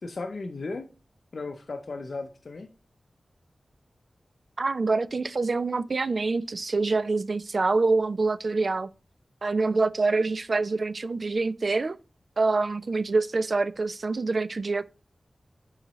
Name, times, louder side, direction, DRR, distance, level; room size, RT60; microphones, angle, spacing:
voice 1, 0.0-0.9 1.3-2.7, left 3 dB, 65° left, 0.6 m, -35 dB
voice 2, 4.6-8.9 9.4-12.0 12.4-14.9, right 3 dB, 50° right, 0.3 m, -26 dB
8.9 x 4.0 x 3.0 m
wide cardioid pair, 115°, 0 cm